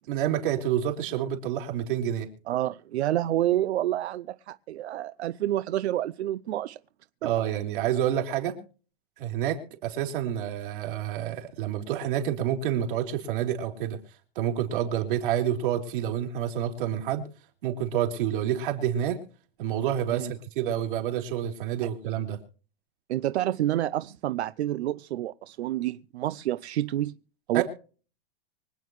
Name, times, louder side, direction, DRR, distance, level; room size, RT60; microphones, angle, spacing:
voice 1, 0.1-2.3 7.2-8.6 9.2-14.0 14.4-17.2 17.6-19.2 19.6-22.4 27.5-27.6, right 10 dB, 55° right, 3.6 m, -28 dB
voice 2, 2.5-6.8 7.2-7.3 20.1-20.3 23.1-27.2 27.5-27.6, right 13 dB, 85° right, 0.7 m, -28 dB
25.0 x 9.2 x 3.2 m
supercardioid pair, 175°, 32 cm